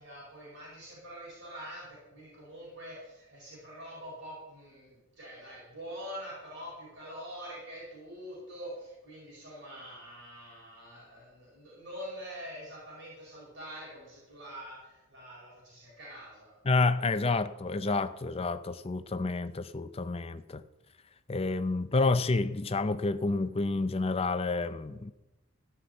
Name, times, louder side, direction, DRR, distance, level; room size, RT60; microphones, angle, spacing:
voice 1, 0.0-16.5, equal, 55° right, 4.6 m, -45 dB
voice 2, 16.6-20.6 21.3-25.1, left 3 dB, 25° left, 0.5 m, -29 dB
13.5 x 6.0 x 8.0 m
head